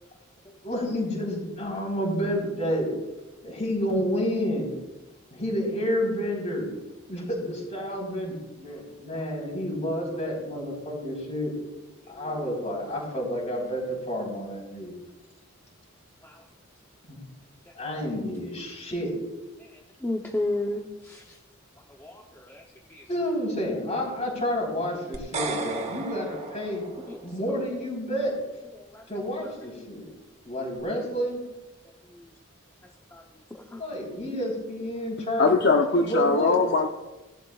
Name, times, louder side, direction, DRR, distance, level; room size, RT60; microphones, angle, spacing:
voice 1, 0.6-3.0 3.4-4.7 5.3-6.7 7.1-11.5 12.1-15.0 17.1-17.2 17.7-19.1 23.1-26.8 27.2-28.4 29.1-30.1 30.5-31.4 33.8-35.6 36.0-36.6, equal, 30° left, -2 dB, 3.9 m, -30 dB
voice 2, 20.0-21.2 22.0-22.6 22.9-23.0 27.1-27.2 27.5-27.6 28.9-29.0 33.1-33.2 33.7-33.8, left 2 dB, 10° left, 0 dB, 0.7 m, -32 dB
sound 1, 25.1-27.4, right 3 dB, 30° right, 1.1 m, -34 dB
voice 3, 35.4-36.9, left 3 dB, 50° left, 4 dB, 0.6 m, -21 dB
18.0 x 12.0 x 2.4 m, 1.1 s
head